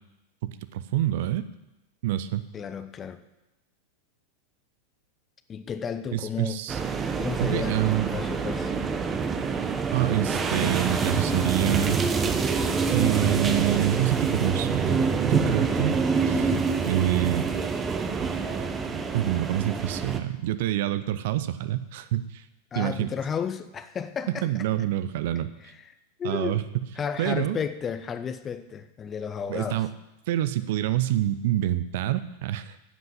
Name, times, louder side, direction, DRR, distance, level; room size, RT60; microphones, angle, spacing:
voice 1, 0.4-1.4 2.0-2.4 6.1-6.8 7.4-8.1 9.9-12.0 12.9-16.0 16.2-16.5 16.9-17.5 19.1-22.5 22.8-23.1 24.4-25.5 26.2-26.6 27.2-27.6 29.5-29.9 30.3-32.8, right 13 dB, 50° right, 13 dB, 0.6 m, -26 dB
voice 2, 2.5-3.2 5.5-6.6 7.2-8.7 22.7-24.5 26.2-26.6 27.0-29.8, left 7 dB, 25° left, 12 dB, 0.7 m, -32 dB
sound 1, 6.7-20.2, right 5 dB, 20° right, 1.0 m, -26 dB
11.0 x 7.9 x 7.5 m, 0.94 s
figure-of-eight pair, 90°, 0 cm